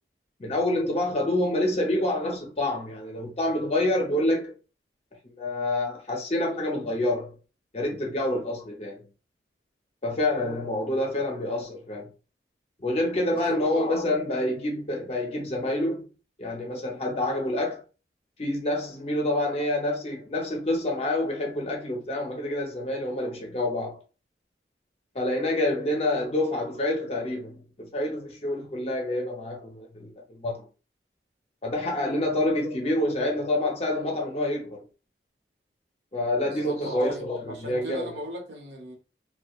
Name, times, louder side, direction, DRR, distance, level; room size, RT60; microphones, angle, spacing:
voice 1, 0.4-4.5 5.2-7.4 7.7-9.0 10.0-12.1 12.8-16.0 16.4-17.8 18.4-24.0 25.1-30.7 31.6-34.8 36.1-38.1, left 1 dB, 35° left, 0.5 m, -27 dB
voice 2, 36.4-38.9, right 1 dB, 80° right, 0.8 m, -38 dB
2.8 x 2.1 x 2.2 m
head